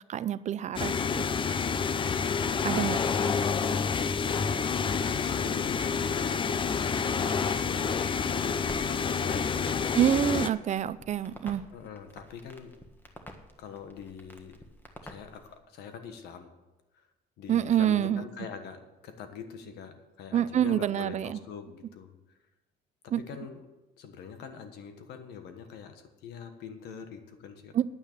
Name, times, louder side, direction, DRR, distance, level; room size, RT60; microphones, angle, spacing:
voice 1, 0.1-1.2 2.6-3.0 9.9-11.6 17.5-18.2 20.3-21.4 23.1-23.2 27.7-27.9, right 10 dB, 45° right, 16 dB, 0.5 m, -27 dB
sound 1, 0.8-10.5, left 6 dB, 30° left, 0.5 m, -28 dB
voice 2, 2.6-3.5 4.4-6.7 7.0-7.8 8.2-10.0 11.7-12.8 13.6-14.6 15.0-16.5 17.4-22.2 23.0-23.7 24.0-27.7, left 7 dB, 80° left, 8 dB, 1.4 m, -44 dB
Crackle, 8.6-15.6, left 1 dB, 10° left, 1.5 m, -48 dB
9.8 x 9.0 x 6.7 m, 1.0 s
cardioid pair, 110°, 17 cm